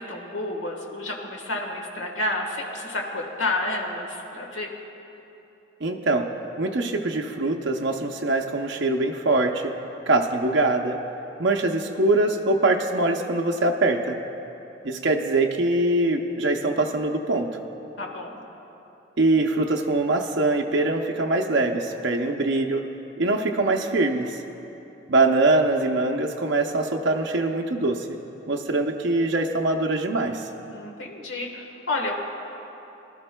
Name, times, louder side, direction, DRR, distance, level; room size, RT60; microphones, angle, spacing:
voice 1, 0.0-4.7 18.0-18.4 30.7-32.1, left 2 dB, 90° left, 1 dB, 1.4 m, -30 dB
voice 2, 5.8-6.3 6.6-9.7 10.1-11.0 11.4-14.2 14.8-17.5 19.2-22.9 23.2-24.4 25.1-28.2 28.5-30.4, right 2 dB, 70° right, 2 dB, 0.6 m, -23 dB
20.0 x 12.5 x 2.2 m, 3.0 s
head